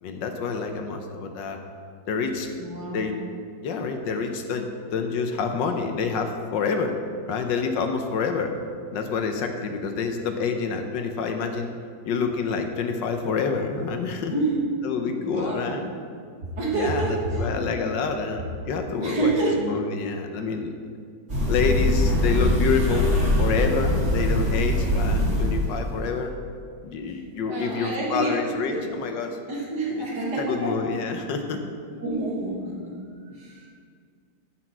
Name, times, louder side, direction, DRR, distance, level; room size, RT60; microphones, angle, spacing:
voice 1, 0.0-1.6 2.1-2.5 2.9-3.2 3.6-6.9 7.3-8.5 8.9-11.7 12.0-14.3 14.8-15.9 16.7-19.3 19.6-20.7 21.5-23.1 23.4-26.3 26.8-29.4 30.0-30.1 30.4-31.6, left 5 dB, 75° left, 5 dB, 1.5 m, -27 dB
voice 2, 2.6-3.1 14.3-14.6 15.2-15.8 16.6-17.2 19.0-19.6 27.5-28.4 28.7-28.9 29.5-30.8 31.1-31.2 32.0-32.9 33.3-33.7, right 2 dB, 60° right, -4 dB, 2.6 m, -28 dB
sound 1, 21.3-25.9, left 1 dB, 40° right, 3.3 m, -22 dB
14.0 x 6.1 x 4.6 m, 2.1 s
omnidirectional pair, 2.0 m